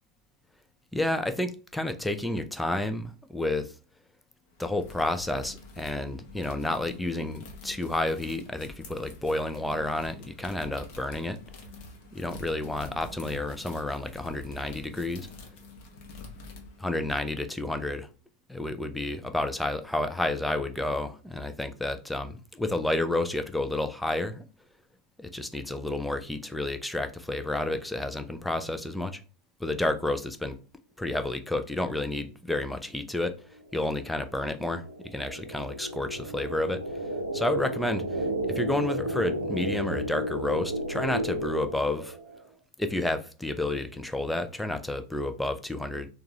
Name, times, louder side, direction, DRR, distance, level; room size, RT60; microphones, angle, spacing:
voice 1, 0.9-3.7 4.6-11.4 12.1-15.3 16.8-18.1 18.5-24.4 25.2-29.2 29.6-30.6 31.0-33.4 33.7-36.8 37.3-42.2 42.8-46.1, left 2 dB, 5° left, 0.4 m, -30 dB
sound 1, 4.5-17.1, left 3 dB, 45° left, 0.8 m, -47 dB
sound 2, 33.6-42.4, right 1 dB, 85° right, 0.6 m, -33 dB
3.5 x 2.3 x 2.9 m
figure-of-eight pair, 90°, 0 cm